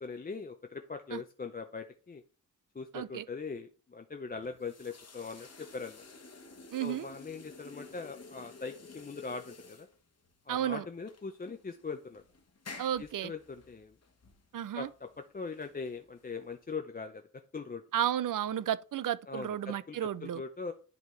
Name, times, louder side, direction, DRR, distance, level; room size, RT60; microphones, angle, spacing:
voice 1, 0.0-2.2 2.7-6.0 6.8-9.9 10.5-12.2 13.0-14.0 14.7-17.8 19.3-20.7, left 4 dB, 30° left, 0.5 m, -41 dB
voice 2, 2.9-3.2 6.7-7.1 10.5-10.8 12.8-13.3 14.5-14.9 17.9-20.4, right 10 dB, 75° right, 0.5 m, -33 dB
sound 1, 4.3-16.7, left 3 dB, 50° left, 1.3 m, -52 dB
10.5 x 4.0 x 3.2 m
wide cardioid pair, 130°, 32 cm